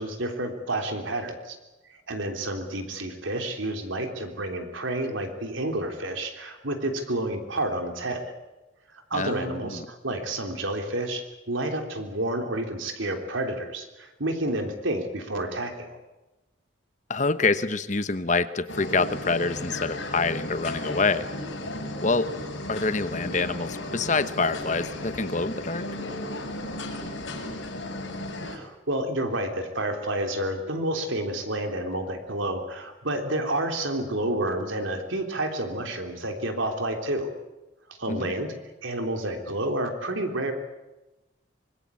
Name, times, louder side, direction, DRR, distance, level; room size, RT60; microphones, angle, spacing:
voice 1, 0.0-1.6 2.1-8.3 8.9-16.0 28.5-37.3 38.0-38.5 38.8-40.5, right 1 dB, 90° right, 4 dB, 3.6 m, -30 dB
voice 2, 9.1-9.9 17.1-21.3 22.0-22.3 22.7-25.8 38.1-38.3, left 3 dB, 40° left, 12 dB, 1.0 m, -26 dB
sound 1, 18.7-28.6, left 1 dB, 85° left, 6.0 m, -35 dB
25.0 x 21.0 x 8.5 m, 1.0 s
head